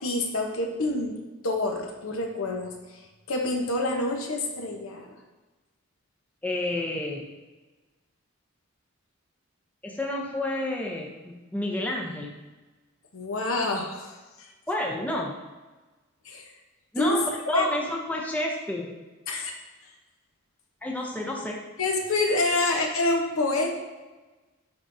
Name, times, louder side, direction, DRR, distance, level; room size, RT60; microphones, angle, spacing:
voice 1, 0.0-1.2 1.4-2.7 3.3-5.1 13.1-14.1 14.4-14.5 16.2-16.5 17.0-17.2 17.5-17.7 19.3-19.5 21.8-23.7, left 2 dB, 75° left, 2 dB, 1.0 m, -27 dB
voice 2, 6.4-7.3 9.8-12.4 14.7-15.3 16.9-19.0 20.8-21.6, left 1 dB, 5° left, -1 dB, 0.6 m, -30 dB
10.0 x 3.8 x 2.7 m, 1.2 s
head